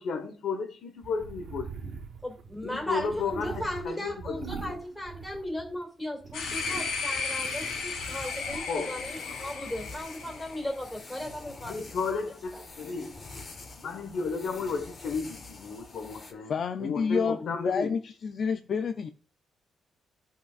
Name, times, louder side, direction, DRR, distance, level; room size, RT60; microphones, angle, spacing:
voice 1, 0.0-2.0 2.6-4.7 8.7-8.9 11.6-13.2 13.8-16.5 16.8-17.9, left 4 dB, 65° left, 1.2 m, -33 dB
sound 1, 1.0-5.8 6.2-8.6, right 6 dB, 50° right, 1.1 m, -43 dB
voice 2, 2.2-12.2 12.5-12.6, left 1 dB, 10° left, 2.3 m, -36 dB
sound 2, 6.3-10.7, left 4 dB, 85° left, 2.7 m, -34 dB
sound 3, 6.4-16.3, left 3 dB, 35° left, 1.3 m, -47 dB
voice 3, 16.5-19.1, left 6 dB, 50° left, 0.4 m, -29 dB
14.0 x 5.7 x 2.4 m
cardioid pair, 140°, 0 cm